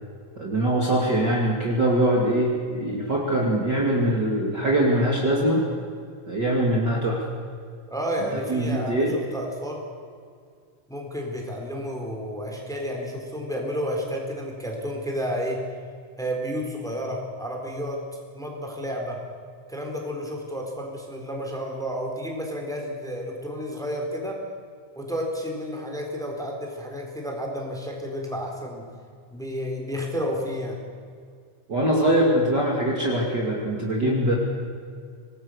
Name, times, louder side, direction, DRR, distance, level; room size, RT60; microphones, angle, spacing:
voice 1, 0.4-5.7 6.3-7.2 8.5-9.1 31.7-34.4, right 1 dB, 35° right, -2 dB, 2.8 m, -22 dB
voice 2, 7.9-9.8 10.9-15.7 16.2-18.0 18.3-19.3 19.7-24.4 25.0-28.9 29.3-30.8, equal, ahead, 0 dB, 3.6 m, -31 dB
26.0 x 19.0 x 6.5 m, 2.2 s
omnidirectional pair, 3.7 m